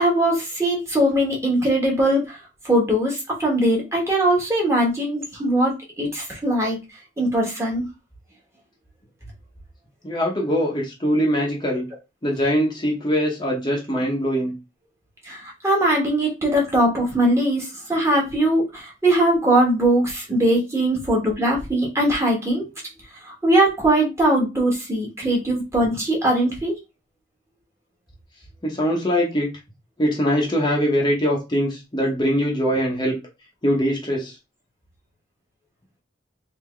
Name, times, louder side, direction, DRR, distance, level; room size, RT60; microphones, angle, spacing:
voice 1, 0.0-2.4 2.6-6.8 7.2-7.8 15.3-22.7 23.4-26.8, right 1 dB, 15° right, -2 dB, 1.4 m, -21 dB
voice 2, 10.0-11.9 12.2-14.5 28.6-29.5 30.0-33.2 33.6-34.4, equal, 25° left, -3 dB, 0.9 m, -22 dB
3.6 x 2.8 x 3.3 m, 0.26 s
head